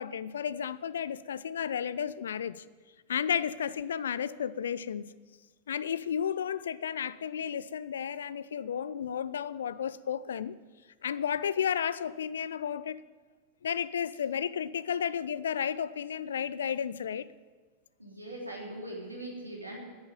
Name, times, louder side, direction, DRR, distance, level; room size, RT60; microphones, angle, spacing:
voice 1, 0.0-2.6 3.1-5.1 5.7-10.5 11.0-13.0 13.6-17.3, left 8 dB, 65° left, 17 dB, 0.5 m, -33 dB
voice 2, 18.0-19.8, right 1 dB, 85° right, -2 dB, 3.4 m, -41 dB
10.5 x 9.4 x 9.4 m, 1.5 s
figure-of-eight pair, 90°, 0 cm